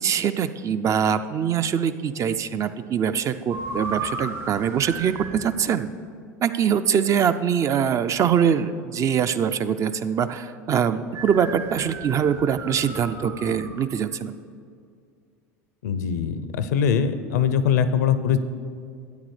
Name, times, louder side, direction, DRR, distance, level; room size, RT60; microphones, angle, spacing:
voice 1, 0.0-5.9 6.4-14.3, right 8 dB, 35° right, 11 dB, 0.4 m, -23 dB
sound 1, 3.5-5.5 11.1-13.8, right 3 dB, 55° right, 1.9 m, -34 dB
voice 2, 15.8-18.4, left 7 dB, 75° left, 12 dB, 0.5 m, -22 dB
13.0 x 8.8 x 3.2 m, 2.3 s
hypercardioid pair, 80°, 9 cm